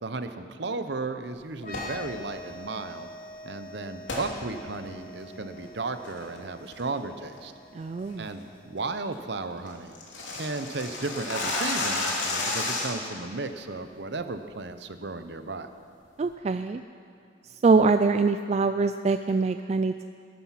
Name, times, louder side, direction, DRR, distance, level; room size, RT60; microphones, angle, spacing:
voice 1, 0.0-3.1 3.4-7.5 8.2-10.0 10.3-15.7, right 3 dB, 60° right, 9 dB, 0.8 m, -34 dB
sound 1, 1.6-2.0 4.1-4.3 4.8-4.9 5.4-5.7 6.0-6.4 6.7-7.0 7.3-7.4 7.8-8.1 8.4-8.5 8.8-8.9 9.1-9.2 9.5-13.1, left 2 dB, 80° left, 2.8 m, -31 dB
sound 2, 1.6-9.1, left 2 dB, 45° left, 1.4 m, -46 dB
voice 2, 7.7-8.3 16.2-16.8 17.6-20.1, right 4 dB, 35° right, 9 dB, 0.3 m, -23 dB
19.5 x 10.5 x 5.9 m, 2.3 s
head